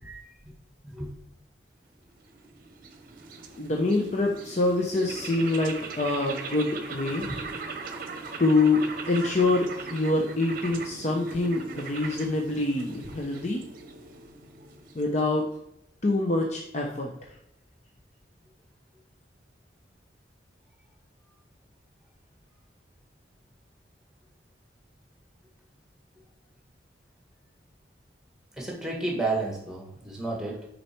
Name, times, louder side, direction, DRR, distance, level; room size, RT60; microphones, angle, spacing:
voice 1, 0.0-0.5 0.8-1.1 7.2-7.4 28.6-30.7, right 2 dB, 5° right, -1 dB, 1.5 m, -32 dB
sound 1, 2.0-15.5, right 4 dB, 50° right, 0.8 m, -40 dB
voice 2, 3.6-7.3 8.4-13.6 14.9-15.5 16.0-17.1, left 2 dB, 40° left, 0 dB, 0.7 m, -25 dB
6.7 x 4.1 x 4.4 m, 0.79 s
head